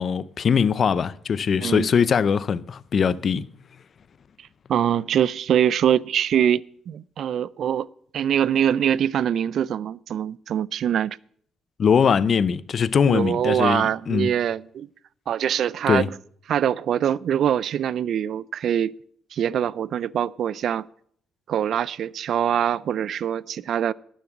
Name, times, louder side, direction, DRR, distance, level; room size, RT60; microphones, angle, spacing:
voice 1, 0.0-3.5 11.8-14.3 15.9-16.1, left 6 dB, 50° left, 0.5 m, -21 dB
voice 2, 4.7-7.9 8.1-11.2 13.1-14.9 15.3-16.1 16.5-18.9 19.3-20.9 21.5-23.9, right 9 dB, 65° right, 0.4 m, -23 dB
11.5 x 7.3 x 7.9 m
cardioid pair, 90°, 0 cm